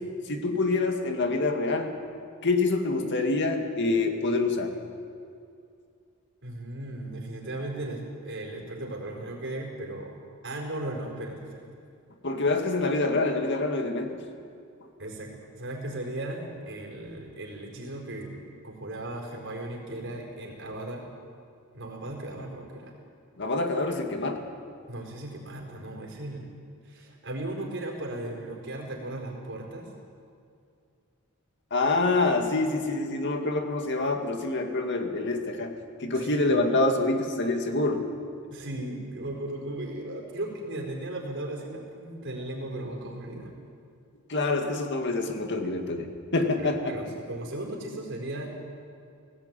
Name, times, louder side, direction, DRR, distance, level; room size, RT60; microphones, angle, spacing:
voice 1, 0.3-1.9 2.4-4.7 12.2-14.2 23.4-24.4 31.7-35.7 36.0-38.0 44.3-46.1 46.3-46.9, left 2 dB, 55° left, 4 dB, 2.2 m, -26 dB
voice 2, 6.4-10.2 10.4-11.6 15.0-21.0 21.7-22.9 24.9-26.5 26.8-29.9 36.1-36.9 38.5-43.5 46.6-48.5, right 1 dB, 55° right, -1 dB, 4.8 m, -37 dB
18.5 x 15.5 x 9.1 m, 2.4 s
head